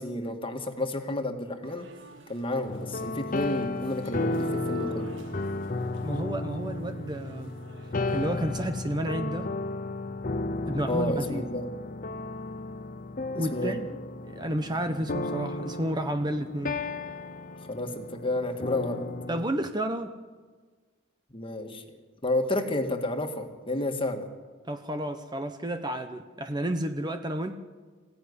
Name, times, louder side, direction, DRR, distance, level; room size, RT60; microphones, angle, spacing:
voice 1, 0.0-1.9 2.3-5.1 10.9-11.7 13.3-13.8 17.7-19.2 21.3-22.0 22.2-24.3, left 1 dB, 25° left, 5 dB, 1.9 m, -31 dB
sound 1, 1.6-2.8 3.2-8.6, left 4 dB, 60° right, 1.6 m, -43 dB
sound 2, 2.7-19.5, left 2 dB, 40° left, 0.9 m, -34 dB
voice 2, 6.0-7.5 8.1-9.5 10.7-11.4 13.4-13.8 14.3-16.8 19.3-20.1 24.6-27.6, right 1 dB, 20° right, 7 dB, 1.0 m, -31 dB
26.5 x 16.0 x 9.8 m, 1.4 s
head